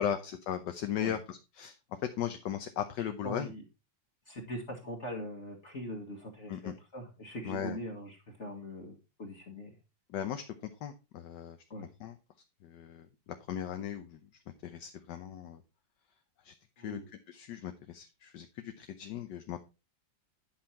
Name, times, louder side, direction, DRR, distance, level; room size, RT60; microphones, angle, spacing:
voice 1, 0.0-1.8 2.2-3.5 6.5-6.7 7.4-7.8 10.1-10.4 10.8-11.6 12.0-12.2 12.6-13.1 13.5-14.2 14.6-15.6 16.4-17.0 17.3-19.6, left 10 dB, 70° left, 7 dB, 1.4 m, -37 dB
voice 2, 3.0-3.6 4.3-9.7 11.7-11.9 16.8-17.1, equal, 40° left, 1 dB, 1.8 m, -42 dB
10.5 x 5.8 x 4.3 m, 0.29 s
omnidirectional pair, 2.0 m